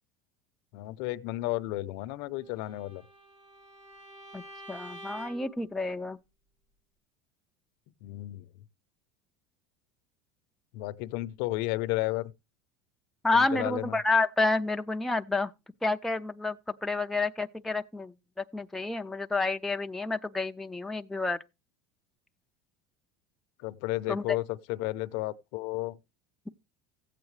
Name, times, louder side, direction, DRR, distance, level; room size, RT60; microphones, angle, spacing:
voice 1, 0.7-3.0 8.0-8.5 10.7-12.3 13.3-14.0 23.6-26.0, left 18 dB, 70° left, 0.6 m, -33 dB
Bowed string instrument, 2.5-5.6, equal, 65° right, 4.6 m, -48 dB
voice 2, 4.7-6.2 13.2-15.5 15.8-21.4 24.1-24.4, left 3 dB, 5° left, 0.4 m, -29 dB
15.0 x 8.2 x 3.2 m
supercardioid pair, 135°, 11 cm